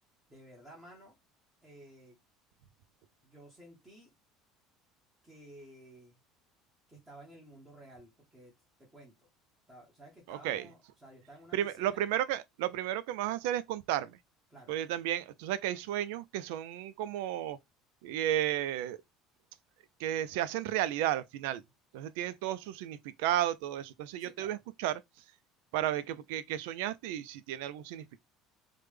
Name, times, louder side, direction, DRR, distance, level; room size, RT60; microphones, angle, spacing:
voice 1, 0.3-1.1 1.6-2.2 3.2-4.1 5.2-6.2 6.9-8.5 8.9-9.1 9.7-12.0 14.5-14.7 24.2-24.6, right 1 dB, 10° right, 0.9 m, -54 dB
voice 2, 10.3-10.7 11.5-14.2 14.7-17.6 18.0-19.0 20.0-21.6 21.9-25.0 25.7-28.2, right 12 dB, 85° right, 0.3 m, -33 dB
3.3 x 2.1 x 3.2 m
cardioid pair, 170°, 0 cm